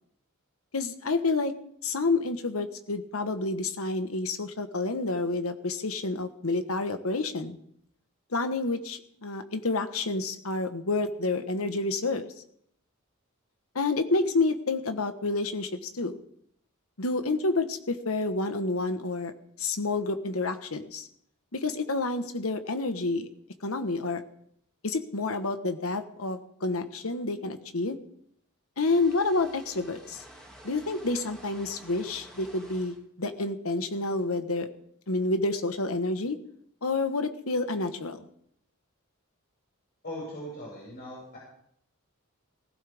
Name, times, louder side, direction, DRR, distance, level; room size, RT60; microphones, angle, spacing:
voice 1, 0.7-1.5 1.8-7.6 8.3-12.3 13.7-16.2 17.0-19.3 19.6-21.1 21.5-23.3 23.6-24.2 24.8-28.0 28.8-30.2 30.6-34.7 35.1-36.4 36.8-38.2, left 3 dB, 80° left, 8 dB, 1.3 m, -29 dB
sound 1, 28.9-33.0, right 1 dB, 5° left, 3.3 m, -50 dB
voice 2, 40.0-41.4, equal, 50° left, -6 dB, 6.7 m, -39 dB
18.5 x 16.0 x 3.6 m, 0.70 s
head